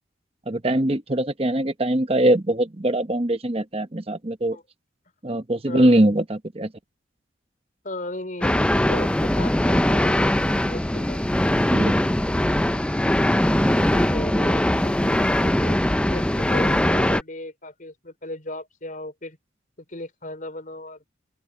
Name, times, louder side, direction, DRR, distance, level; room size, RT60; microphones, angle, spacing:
voice 1, 0.5-4.6 5.2-6.7 11.7-11.9, right 1 dB, 30° right, 1.0 m, -22 dB
voice 2, 5.7-6.0 7.8-10.2 10.5-11.2 12.9-15.8 16.1-19.4 19.9-21.1, left 1 dB, 45° left, 5.1 m, -36 dB
sound 1, 8.4-17.2, left 1 dB, 5° left, 0.4 m, -21 dB
open air
head